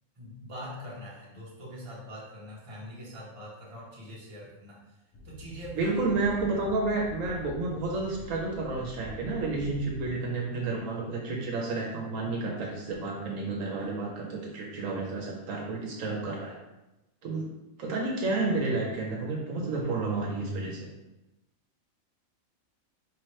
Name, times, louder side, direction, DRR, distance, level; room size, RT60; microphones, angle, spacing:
voice 1, 0.2-4.8 5.2-6.0, equal, 25° right, -6 dB, 1.0 m, -43 dB
sound 1, 5.1-10.1, left 1 dB, 60° left, 0.9 m, -45 dB
voice 2, 5.8-16.6 17.2-17.4 17.8-20.9, right 3 dB, 70° right, -1 dB, 1.1 m, -31 dB
4.7 x 3.0 x 3.1 m, 0.98 s
omnidirectional pair, 1.4 m